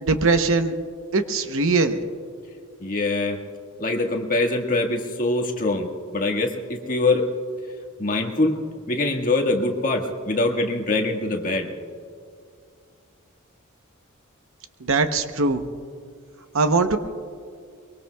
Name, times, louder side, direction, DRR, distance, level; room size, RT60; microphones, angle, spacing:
voice 1, 0.0-0.7 1.1-2.0 14.8-15.6 16.5-17.0, right 3 dB, 65° right, 8 dB, 0.9 m, -21 dB
voice 2, 2.8-3.4 3.8-5.9 6.1-7.2 8.0-8.6 8.9-11.7, left 2 dB, 40° left, 1 dB, 1.6 m, -23 dB
23.5 x 22.5 x 2.3 m, 2.2 s
head